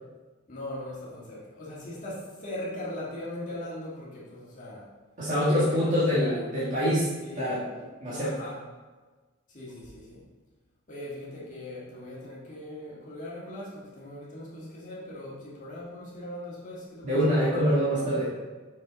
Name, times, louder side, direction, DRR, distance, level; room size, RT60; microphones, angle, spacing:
voice 1, 0.5-4.9 5.5-6.4 7.2-7.7 8.2-8.6 9.5-10.2 10.9-17.4, left 1 dB, 40° left, -7 dB, 1.6 m, -40 dB
voice 2, 5.2-7.1 7.4-7.6 8.0-8.4 17.0-18.3, equal, 40° right, -10 dB, 1.9 m, -25 dB
6.4 x 5.4 x 3.9 m, 1.3 s
head